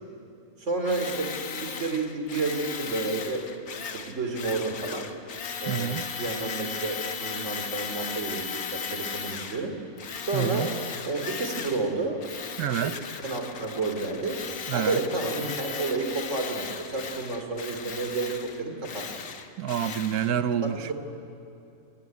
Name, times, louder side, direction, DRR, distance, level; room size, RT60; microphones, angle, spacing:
voice 1, 0.6-3.4 3.8-5.0 5.6-9.7 10.3-10.7 11.0-12.2 12.8-12.9 13.2-14.4 14.7-19.0 20.6-20.9, right 3 dB, 50° right, 4 dB, 3.3 m, -30 dB
Tools, 0.9-9.6 10.0-11.9 12.2-20.3, left 6 dB, 75° left, 1.7 m, -36 dB
voice 2, 5.7-6.0 10.3-10.7 12.6-13.0 14.7-15.0 19.6-20.9, right 9 dB, 85° right, 12 dB, 1.3 m, -28 dB
22.5 x 21.5 x 9.4 m, 2.6 s
omnidirectional pair, 1.6 m